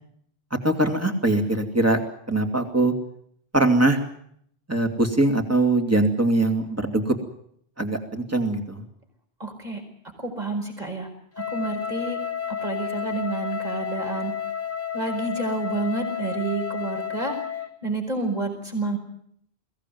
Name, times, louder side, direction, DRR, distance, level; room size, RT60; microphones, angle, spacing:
voice 1, 0.6-2.0 2.3-2.9 3.5-4.0 4.7-7.2 7.8-8.8, right 2 dB, 15° right, 4 dB, 2.6 m, -22 dB
voice 2, 9.4-9.8 10.2-11.1 11.4-12.2 12.5-14.4 14.9-17.4 17.8-19.0, right 3 dB, 40° right, 3 dB, 5.2 m, -29 dB
Wind instrument woodwind instrument, 11.3-17.8, left 8 dB, 15° left, 1.3 m, -31 dB
22.5 x 16.5 x 9.3 m, 0.70 s
omnidirectional pair, 1.1 m